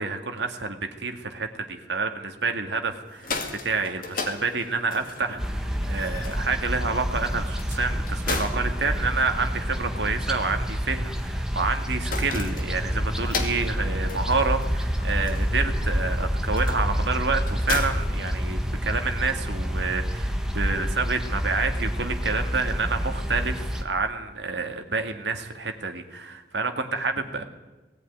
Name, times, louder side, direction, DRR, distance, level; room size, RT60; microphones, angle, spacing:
voice 1, 0.0-27.4, right 4 dB, 70° right, 6 dB, 2.0 m, -28 dB
sound 1, 3.0-18.9, left 4 dB, 50° left, 2.3 m, -38 dB
sound 2, 5.4-23.8, equal, 5° right, 1.4 m, -28 dB
19.0 x 14.0 x 9.6 m, 1.2 s
head